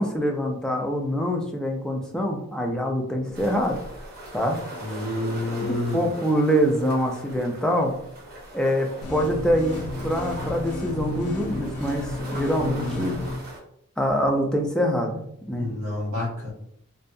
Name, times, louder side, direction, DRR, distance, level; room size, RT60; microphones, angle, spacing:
voice 1, 0.0-3.8 4.3-4.6 5.6-8.0 8.5-13.2 14.0-15.2 15.5-15.7, equal, 5° left, 1 dB, 0.3 m, -25 dB
sound 1, 3.3-13.6, right 1 dB, 45° right, 0.7 m, -40 dB
voice 2, 4.8-6.0 12.6-13.0 15.6-16.5, left 2 dB, 85° right, -4 dB, 1.4 m, -29 dB
sound 2, 9.0-13.4, left 1 dB, 80° left, 0.4 m, -33 dB
2.6 x 2.2 x 2.6 m, 0.70 s
head